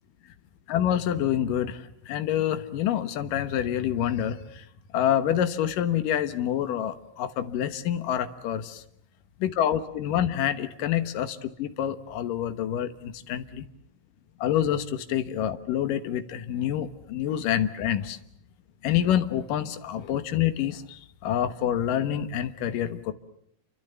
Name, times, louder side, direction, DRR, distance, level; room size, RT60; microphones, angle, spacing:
voice 1, 0.7-4.7 4.9-8.8 9.4-13.6 14.4-18.2 18.8-23.1, left 10 dB, 70° left, 11 dB, 2.1 m, -27 dB
29.0 x 25.0 x 6.9 m, 0.71 s
omnidirectional pair, 5.4 m